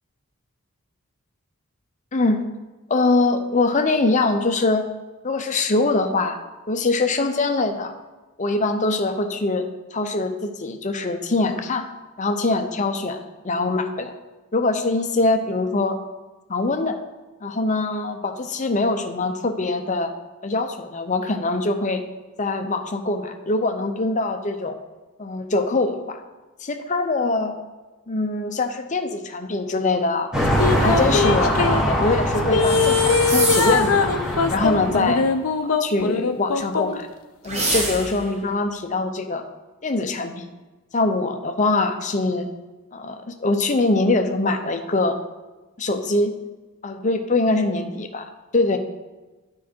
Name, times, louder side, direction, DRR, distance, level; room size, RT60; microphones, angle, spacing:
voice 1, 2.1-2.4 2.9-4.9 5.2-6.4 6.7-7.9 8.4-9.6 9.9-11.9 12.2-14.1 14.5-16.0 16.5-17.0 17.4-20.1 20.4-22.0 22.4-24.8 25.2-26.2 26.6-27.5 28.1-30.3 30.8-34.1 34.5-35.2 35.8-37.1 37.4-39.4 39.8-40.5 40.9-42.5 42.9-45.2 45.8-46.3 46.8-48.2 48.5-48.8, left 2 dB, 35° left, 6 dB, 0.6 m, -23 dB
sound 1, 30.3-35.2, equal, 5° right, 1.4 m, -23 dB
sound 2, 30.6-31.8 32.5-37.0 37.5-37.6, left 5 dB, 70° left, 0.6 m, -21 dB
sound 3, 32.6-33.9 37.4-38.3, right 2 dB, 30° right, 1.4 m, -25 dB
9.8 x 4.8 x 4.4 m, 1.2 s
head